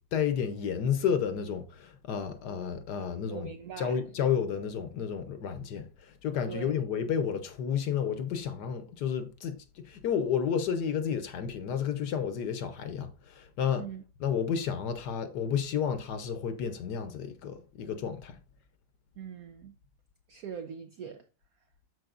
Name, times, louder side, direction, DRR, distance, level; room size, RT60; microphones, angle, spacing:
voice 1, 0.1-3.5 3.8-13.8 14.2-18.4, left 7 dB, 65° left, 1.2 m, -31 dB
voice 2, 3.3-4.0 6.5-6.8 13.8-14.0 19.2-19.8 20.3-21.3, right 7 dB, 90° right, 0.8 m, -42 dB
12.5 x 4.7 x 2.5 m
omnidirectional pair, 2.2 m